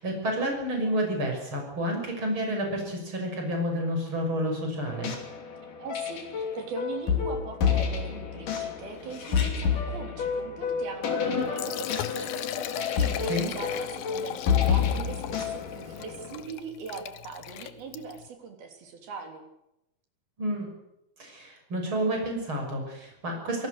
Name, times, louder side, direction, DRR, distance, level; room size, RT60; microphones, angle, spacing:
voice 1, 0.0-5.1 13.3-13.5 20.4-20.7 21.2-23.7, equal, 30° right, 2 dB, 7.0 m, -30 dB
sound 1, 4.9-16.4, left 7 dB, 55° left, 4.4 m, -29 dB
voice 2, 5.8-19.4, right 5 dB, 70° right, 4 dB, 5.1 m, -41 dB
Liquid, 11.4-18.3, left 13 dB, 75° left, 2.6 m, -38 dB
26.0 x 18.5 x 6.7 m, 0.87 s
omnidirectional pair, 4.4 m